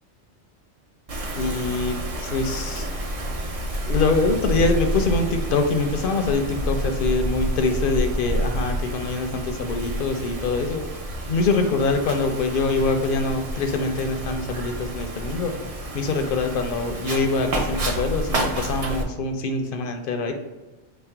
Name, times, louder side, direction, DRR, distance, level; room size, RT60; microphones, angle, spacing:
Wind, 1.1-19.0, right 1 dB, 45° right, 0.5 m, -29 dB
voice 1, 1.3-2.9 3.8-10.8 11.3-15.7 15.9-20.3, left 3 dB, 60° left, 5 dB, 0.6 m, -24 dB
4.2 x 2.0 x 4.4 m, 1.1 s
omnidirectional pair, 1.2 m